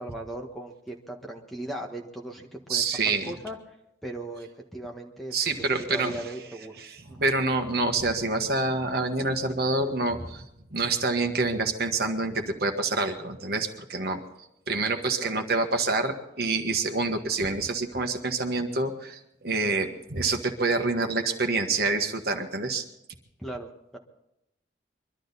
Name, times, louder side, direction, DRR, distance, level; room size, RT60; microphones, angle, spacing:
voice 1, 0.0-3.6 4.0-7.2 15.2-15.4 23.4-24.0, right 1 dB, ahead, 1 dB, 1.5 m, -38 dB
voice 2, 2.7-3.3 5.3-6.2 6.8-10.4 10.7-14.2 14.7-22.8, right 3 dB, 55° right, 5 dB, 1.5 m, -27 dB
23.0 x 12.5 x 4.1 m, 0.83 s
head